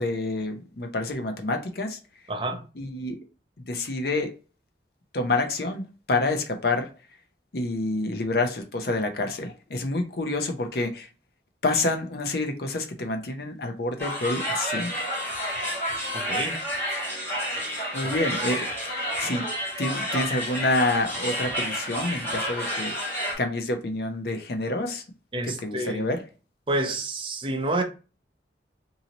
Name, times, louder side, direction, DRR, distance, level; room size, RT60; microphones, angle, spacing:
voice 1, 0.0-2.0 2.8-3.2 3.7-4.3 5.1-6.9 7.5-11.1 11.6-15.1 17.9-18.7 19.0-19.4 19.8-22.9 23.4-25.0 25.4-26.2, left 2 dB, 60° left, 0.6 m, -28 dB
voice 2, 2.3-2.6 16.1-16.6 25.3-26.1 26.7-27.8, right 2 dB, 30° right, 0.6 m, -28 dB
sound 1, 14.0-23.4, equal, 10° left, 1.5 m, -30 dB
3.9 x 2.7 x 2.9 m
head